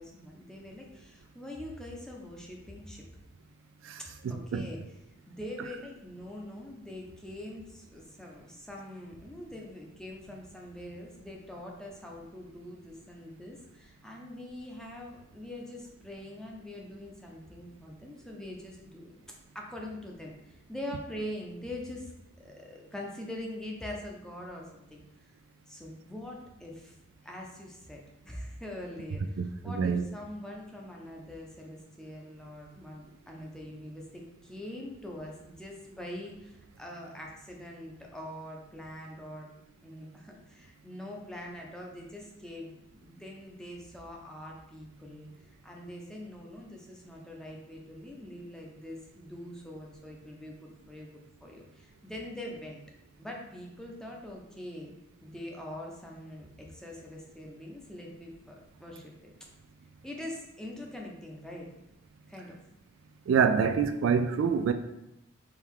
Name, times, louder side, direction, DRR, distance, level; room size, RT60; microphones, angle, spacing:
voice 1, 0.0-3.0 4.0-4.8 5.3-25.3 25.7-27.0 27.2-39.5 39.8-45.3 45.6-51.1 51.4-52.8 53.2-54.9 55.2-59.3 60.0-61.7 62.3-62.6, left 1 dB, 5° left, 0.6 m, -43 dB
voice 2, 3.8-4.6 29.4-30.0 63.3-64.7, right 6 dB, 75° right, 0.3 m, -27 dB
4.5 x 2.3 x 3.6 m
head